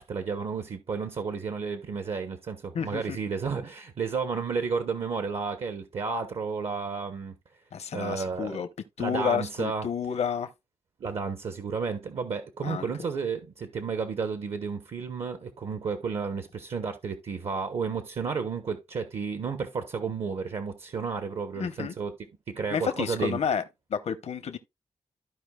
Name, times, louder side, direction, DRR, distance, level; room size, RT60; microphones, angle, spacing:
voice 1, 0.0-7.3 7.9-8.6 9.0-9.9 11.0-22.1 22.5-23.4, right 5 dB, 70° right, 1.1 m, -32 dB
voice 2, 2.7-3.2 7.7-8.7 9.0-10.5 12.6-12.9 21.6-21.9 22.7-23.6 23.9-24.6, left 7 dB, 85° left, 0.9 m, -30 dB
14.5 x 4.8 x 2.3 m
cardioid pair, 80°, 11 cm